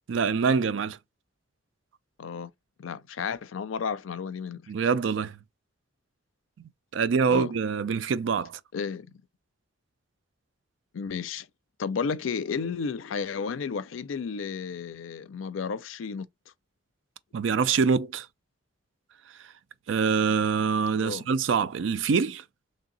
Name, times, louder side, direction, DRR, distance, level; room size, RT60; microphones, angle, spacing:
voice 1, 0.1-1.0 4.7-5.4 6.9-8.6 17.3-18.3 19.9-22.4, right 5 dB, 75° right, 0.4 m, -25 dB
voice 2, 2.2-2.5 2.8-4.7 7.3-7.5 8.7-9.1 10.9-11.5 11.8-16.3 20.9-21.3, left 5 dB, 85° left, 0.5 m, -32 dB
3.1 x 2.8 x 3.9 m
head